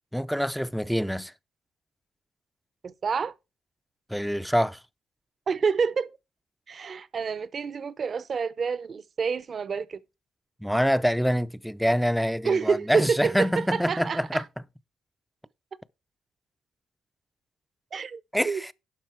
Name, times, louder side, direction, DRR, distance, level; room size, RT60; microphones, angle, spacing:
voice 1, 0.1-1.3 4.1-4.8 10.6-14.4 18.3-18.7, equal, ahead, 0.4 m, -25 dB
voice 2, 2.8-3.3 5.5-6.1 6.7-10.0 12.4-14.4 17.9-18.6, right 5 dB, 45° right, 0.7 m, -28 dB
11.5 x 5.5 x 4.5 m
cardioid pair, 90°, 0 cm